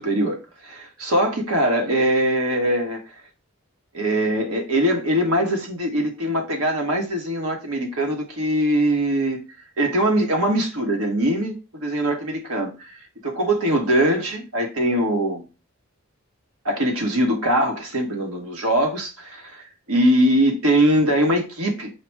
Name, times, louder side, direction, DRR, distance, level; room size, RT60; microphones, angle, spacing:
voice 1, 0.0-3.0 3.9-9.4 9.8-13.0 13.2-15.4 16.6-21.9, right 1 dB, 85° right, 1.2 m, -22 dB
4.9 x 2.0 x 4.6 m
head